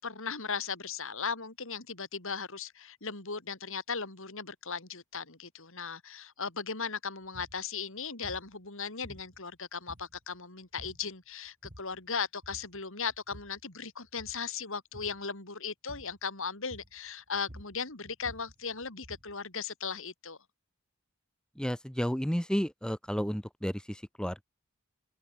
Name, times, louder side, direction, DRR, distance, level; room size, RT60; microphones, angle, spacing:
voice 1, 0.0-20.4, left 5 dB, 65° left, 4.4 m, -37 dB
sound 1, 7.2-7.6 8.2-8.5 9.0-9.5 9.9-10.4 10.8-11.1 11.5-12.0 12.4-12.8 13.1-13.6 14.1-14.5 14.9-15.2 15.9-16.2 16.7-17.1 17.3-19.4, equal, 40° right, 7.3 m, -51 dB
voice 2, 21.6-24.4, equal, 5° left, 1.5 m, -32 dB
head